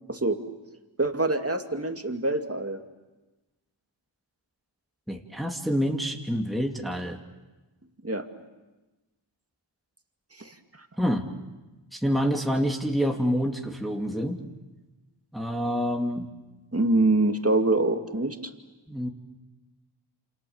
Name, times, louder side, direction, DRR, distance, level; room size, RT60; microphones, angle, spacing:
voice 1, 1.0-2.8 8.0-8.2 10.4-10.5 16.7-18.4, right 2 dB, 30° right, 6 dB, 2.4 m, -24 dB
voice 2, 5.1-7.2 11.0-11.3 11.9-14.4 15.3-16.3 18.9-19.1, equal, ahead, 2 dB, 2.5 m, -27 dB
28.0 x 28.0 x 7.2 m, 1.1 s
wide cardioid pair, 45°, 48 cm